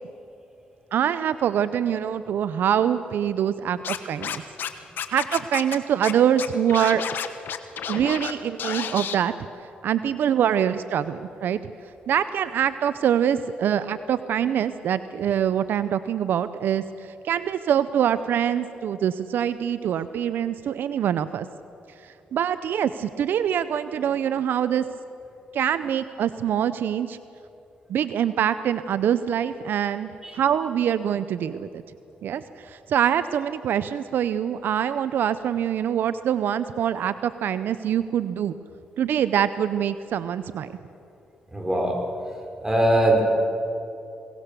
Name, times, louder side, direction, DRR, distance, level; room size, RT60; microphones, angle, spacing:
voice 1, 0.9-4.4 5.1-7.0 7.9-9.3 9.8-11.6 12.1-16.8 17.2-21.5 22.3-24.8 25.5-27.2 27.9-31.8 32.2-38.5 39.0-40.7, right 9 dB, 75° right, 13 dB, 0.6 m, -24 dB
Scratching (performance technique), 3.8-4.7 5.0-5.8 6.0-6.1 6.4-8.3 8.6-9.2, left 8 dB, 75° left, 1.1 m, -30 dB
voice 2, 41.5-42.0 42.6-43.2, right 1 dB, 15° right, 2 dB, 5.1 m, -20 dB
22.0 x 18.5 x 6.8 m, 2.7 s
cardioid pair, 70°, 3 cm